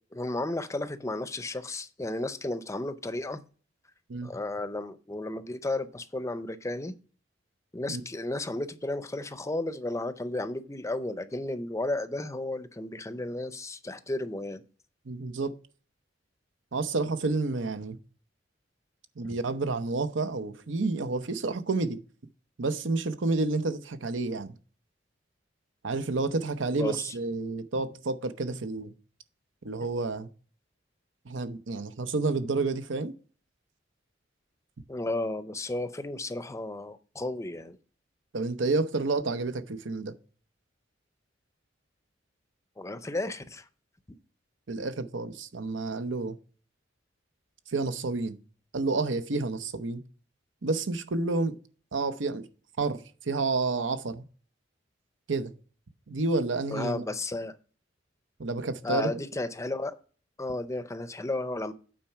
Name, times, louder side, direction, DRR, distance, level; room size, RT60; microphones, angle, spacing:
voice 1, 0.1-3.4 4.2-6.9 7.7-14.6 19.2-19.3 26.7-27.1 29.8-29.9 34.9-37.8 42.8-43.7 56.7-57.6 58.8-60.0 60.4-61.7, left 2 dB, 15° left, 0.5 m, -33 dB
voice 2, 15.1-15.5 16.7-18.0 19.2-22.0 22.6-24.5 25.8-28.9 29.6-30.3 31.2-33.1 38.3-40.1 44.7-46.4 47.7-48.4 48.7-50.0 50.6-51.6 51.9-52.5 52.8-54.2 55.3-55.5 56.1-57.0 58.4-59.1, right 3 dB, 90° right, 0.8 m, -30 dB
8.9 x 4.4 x 5.7 m
head